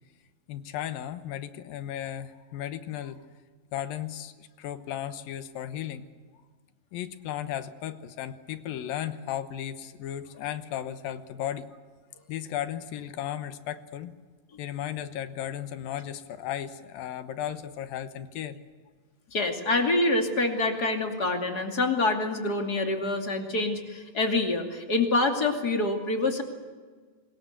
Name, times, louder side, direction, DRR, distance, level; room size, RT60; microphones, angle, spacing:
voice 1, 0.5-3.2 3.7-6.1 6.9-11.7 12.3-14.1 14.6-18.6, left 11 dB, 80° left, 11 dB, 2.8 m, -35 dB
voice 2, 19.3-26.4, left 2 dB, 30° left, 4 dB, 2.6 m, -26 dB
25.0 x 21.5 x 8.2 m, 1.5 s
omnidirectional pair, 4.1 m